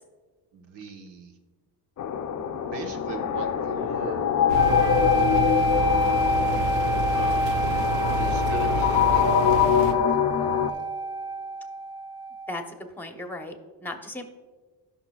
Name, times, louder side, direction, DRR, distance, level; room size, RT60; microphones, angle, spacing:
voice 1, 0.5-1.3 2.4-4.3 5.0-6.2 7.1-7.7 8.2-10.9, right 4 dB, 70° right, 4 dB, 1.3 m, -40 dB
sound 1, 2.0-10.7, left 8 dB, 40° left, 0.6 m, -24 dB
sound 2, 4.5-12.6, equal, 10° right, 0.4 m, -27 dB
sound 3, 4.5-9.9, right 4 dB, 85° right, 0.8 m, -30 dB
voice 2, 12.5-13.5 13.8-14.2, left 1 dB, 5° left, 4 dB, 0.9 m, -36 dB
16.5 x 5.8 x 2.4 m, 1.4 s
cardioid pair, 110°, 43 cm